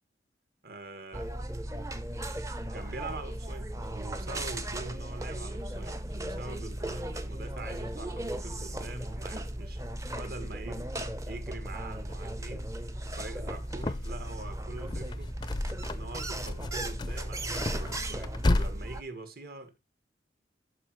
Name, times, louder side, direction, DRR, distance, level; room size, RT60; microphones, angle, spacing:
voice 1, 0.6-1.4 2.7-9.9 10.1-12.7 13.1-15.4 15.9-19.8, right 2 dB, 50° right, 1.8 m, -44 dB
sound 1, 1.1-19.0, right 1 dB, 15° right, 0.7 m, -37 dB
sound 2, 13.3-14.4 14.7-16.1 16.5-18.7, left 2 dB, 20° left, 0.4 m, -32 dB
12.0 x 5.0 x 3.1 m
head